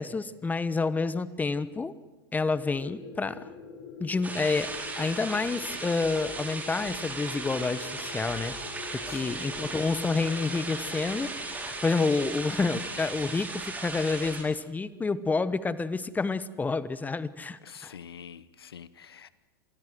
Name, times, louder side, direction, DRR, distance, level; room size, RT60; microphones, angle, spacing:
voice 1, 0.0-1.9 2.3-3.4 4.0-8.5 8.9-11.3 11.6-17.9, left 4 dB, 15° left, 16 dB, 1.0 m, -29 dB
sound 1, 2.7-13.2, left 4 dB, 60° left, 6.5 m, -46 dB
sound 2, 4.2-14.4, right 3 dB, 10° right, 4.7 m, -37 dB
voice 2, 9.0-9.4 17.6-19.3, left 8 dB, 90° left, 16 dB, 1.1 m, -47 dB
27.0 x 20.0 x 7.8 m, 1.1 s
hypercardioid pair, 105°, 12 cm